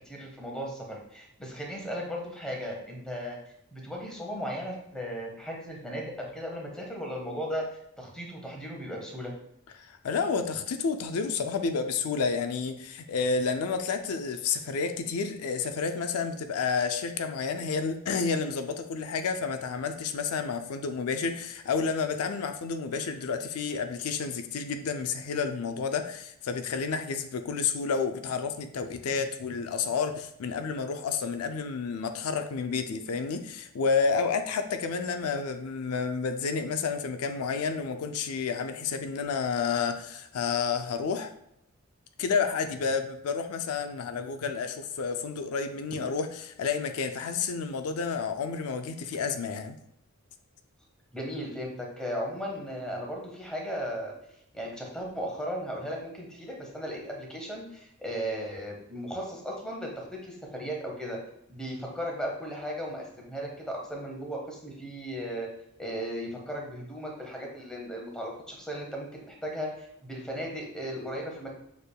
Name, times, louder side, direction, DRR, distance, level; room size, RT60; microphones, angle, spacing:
voice 1, 0.1-3.4 3.7-7.6 8.0-9.3 51.1-54.1 54.5-61.2 61.5-65.5 65.8-71.5, equal, 5° left, -1 dB, 0.9 m, -36 dB
voice 2, 9.8-41.3 42.2-49.8, left 5 dB, 80° left, 7 dB, 0.4 m, -30 dB
6.5 x 3.4 x 2.2 m, 0.76 s
head